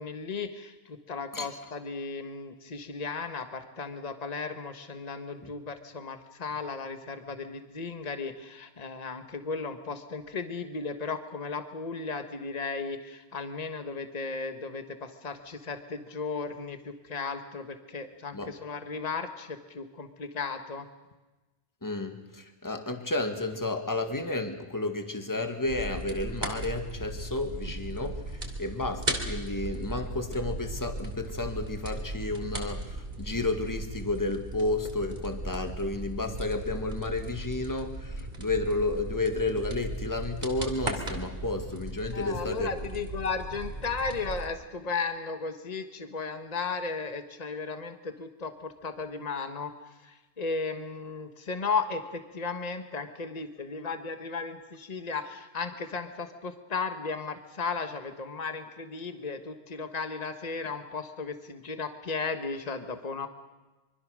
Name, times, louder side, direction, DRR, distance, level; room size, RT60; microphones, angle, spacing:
voice 1, 0.0-20.9 42.1-49.7 50.0-63.3, left 4 dB, 35° left, 8 dB, 1.5 m, -35 dB
voice 2, 21.8-42.7, left 2 dB, 15° left, 6 dB, 1.9 m, -32 dB
sound 1, 25.7-44.5, right 2 dB, 45° right, 3.0 m, -37 dB
25.0 x 24.5 x 6.4 m, 1.1 s
omnidirectional pair, 1.2 m